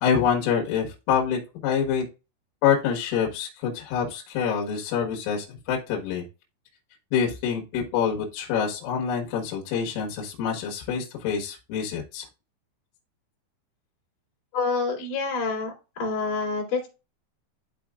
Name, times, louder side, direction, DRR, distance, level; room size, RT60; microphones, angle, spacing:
voice 1, 0.0-2.0 2.6-6.2 7.1-12.3, left 7 dB, 80° left, -1 dB, 4.0 m, -26 dB
voice 2, 14.5-16.9, left 4 dB, 40° left, -10 dB, 4.6 m, -27 dB
12.5 x 4.4 x 2.4 m, 0.30 s
omnidirectional pair, 5.8 m